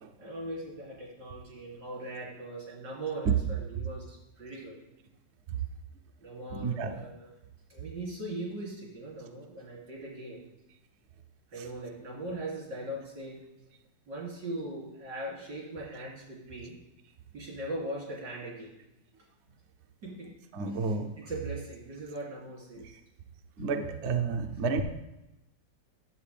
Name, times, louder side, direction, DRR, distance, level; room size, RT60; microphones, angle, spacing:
voice 1, 0.2-4.8 6.2-7.3 7.7-10.5 11.5-13.4 14.1-16.8 17.3-18.7 20.0-20.3 20.7-22.9, right 1 dB, 80° right, -4 dB, 3.6 m, -40 dB
voice 2, 6.5-7.0 20.5-21.1 23.6-24.8, right 5 dB, 55° right, 6 dB, 0.8 m, -30 dB
10.5 x 7.7 x 3.4 m, 0.95 s
omnidirectional pair, 1.9 m